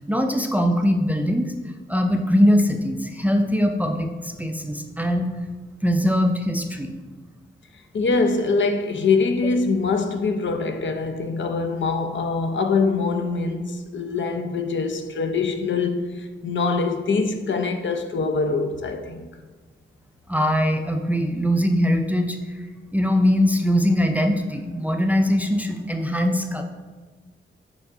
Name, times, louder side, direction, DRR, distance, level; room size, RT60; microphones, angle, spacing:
voice 1, 0.1-1.5 1.9-5.3 5.8-6.9 20.3-22.4 22.9-26.6, equal, 5° right, 0.4 m, -21 dB
voice 2, 7.9-19.3, left 4 dB, 65° left, 0.6 m, -24 dB
7.0 x 4.4 x 3.8 m
wide cardioid pair, 140°, 21 cm